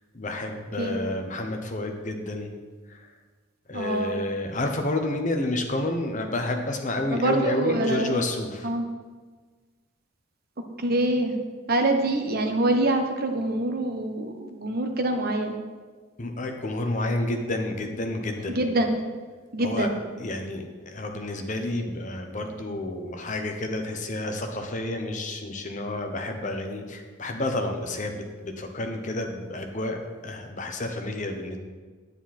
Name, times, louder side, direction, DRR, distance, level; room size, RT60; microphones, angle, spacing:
voice 1, 0.1-2.5 2.9-3.1 3.7-8.7 16.2-18.6 19.6-19.9 20.2-31.6, left 2 dB, 40° left, 4 dB, 1.0 m, -30 dB
voice 2, 3.7-4.2 7.1-8.2 8.6-8.8 10.8-11.3 11.7-15.5 18.5-19.0 19.5-19.9, right 2 dB, 50° right, 4 dB, 1.1 m, -25 dB
10.0 x 9.5 x 4.4 m, 1.4 s
head